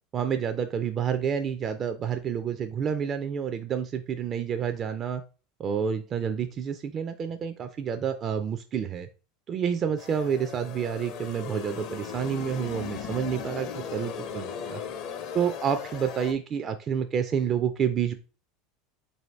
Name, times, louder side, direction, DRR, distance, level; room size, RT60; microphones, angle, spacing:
voice 1, 0.1-5.2 5.6-9.1 9.5-14.8 15.3-18.1, right 7 dB, 40° right, 7 dB, 0.3 m, -29 dB
sound 1, 10.0-16.3, left 7 dB, 55° left, 0.6 m, -37 dB
4.1 x 2.7 x 3.1 m, 0.35 s
hypercardioid pair, 85°, 0 cm